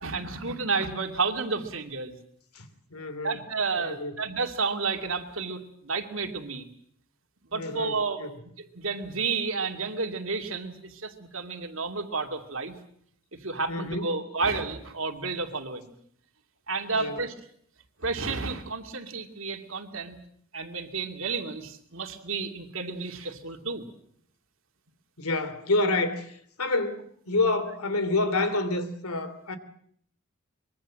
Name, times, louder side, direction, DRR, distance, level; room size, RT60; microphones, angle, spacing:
voice 1, 0.0-2.2 3.2-6.7 7.5-8.2 8.6-12.8 13.3-15.9 16.7-17.3 18.0-20.2 20.5-23.8, right 4 dB, 65° right, 2.7 m, -31 dB
voice 2, 2.5-3.4 3.8-4.1 7.5-8.4 13.7-14.0 16.9-17.2 25.2-29.6, left 2 dB, 85° left, 2.9 m, -28 dB
24.5 x 22.5 x 7.6 m
head